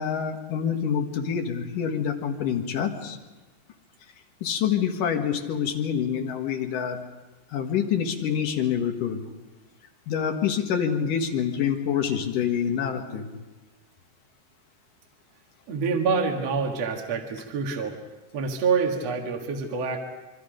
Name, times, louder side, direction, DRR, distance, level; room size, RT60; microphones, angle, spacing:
voice 1, 0.0-3.2 4.4-7.0 7.5-9.3 10.1-13.4, left 8 dB, 60° left, 3 dB, 2.9 m, -26 dB
voice 2, 15.7-18.0 18.3-20.0, right 5 dB, 50° right, 1 dB, 2.4 m, -26 dB
26.5 x 24.0 x 5.2 m, 1.2 s
omnidirectional pair, 4.9 m